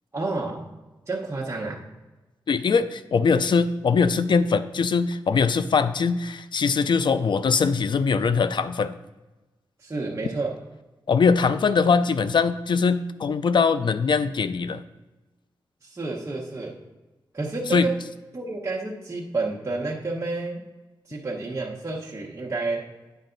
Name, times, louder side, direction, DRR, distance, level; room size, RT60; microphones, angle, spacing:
voice 1, 0.1-0.6 1.1-1.9 9.8-10.5 15.8-16.8 17.3-18.0 18.3-20.6 21.1-22.9, right 3 dB, 30° right, -4 dB, 1.1 m, -30 dB
voice 2, 2.5-9.0 11.1-14.8 17.7-17.9, left 5 dB, 60° left, 12 dB, 0.5 m, -22 dB
9.0 x 5.4 x 3.9 m, 1.1 s
cardioid pair, 75°, 9 cm